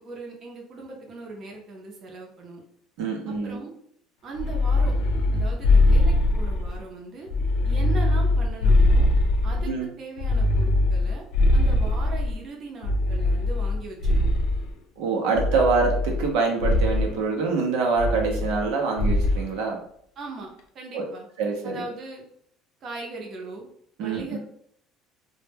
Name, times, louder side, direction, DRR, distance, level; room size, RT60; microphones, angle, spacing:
voice 1, 0.0-2.6 3.3-3.7 4.2-4.9 5.3-7.3 7.6-9.1 9.4-11.2 11.5-14.3 20.2-20.5 20.7-21.3 21.6-22.2 22.8-23.7 24.0-24.4, right 3 dB, 35° right, 0 dB, 0.6 m, -39 dB
voice 2, 3.0-3.6 9.7-9.9 15.0-19.8 20.9-21.1 21.4-21.9 24.0-24.4, right 4 dB, 80° right, 1 dB, 0.6 m, -25 dB
sound 1, 4.4-6.8 7.3-9.7 10.2-12.4 12.8-14.7 15.3-16.3 16.6-17.1 18.0-18.7 19.0-19.4, left 2 dB, 70° left, 0.4 m, -21 dB
2.1 x 2.1 x 3.2 m, 0.66 s
cardioid pair, 150°, 0 cm